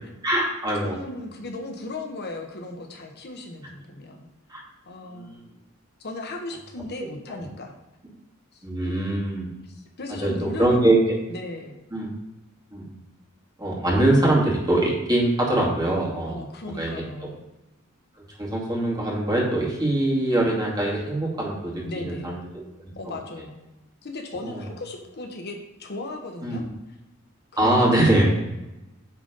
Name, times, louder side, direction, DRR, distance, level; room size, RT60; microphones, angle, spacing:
voice 1, 0.2-1.0 4.5-4.6 5.1-5.4 8.6-9.5 10.2-11.0 11.9-12.1 12.7-13.0 13.6-16.9 18.4-22.4 23.1-23.2 24.4-24.6 26.4-26.7 27.6-28.3, right 1 dB, 20° right, -3 dB, 2.2 m, -23 dB
voice 2, 0.8-4.3 4.9-5.4 6.0-7.7 8.5-8.9 9.6-10.9 11.3-11.8 16.3-17.4 21.8-22.4 22.9-23.6 24.0-26.6 27.6-27.9, left 2 dB, 50° left, 3 dB, 1.0 m, -36 dB
9.1 x 3.9 x 5.2 m, 0.96 s
head